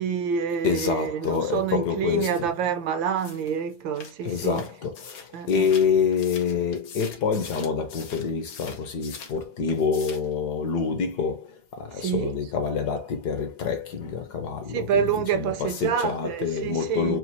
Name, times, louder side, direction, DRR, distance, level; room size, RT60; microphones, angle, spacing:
voice 1, 0.0-4.6 5.3-5.7 11.9-12.3 14.7-17.2, right 7 dB, 75° right, 1.4 m, -27 dB
voice 2, 0.6-2.5 4.2-17.2, left 6 dB, 60° left, 1.3 m, -27 dB
sound 1, 3.2-9.4 9.7-10.3, left 6 dB, 85° left, 1.9 m, -44 dB
4.5 x 2.4 x 4.1 m
omnidirectional pair, 2.1 m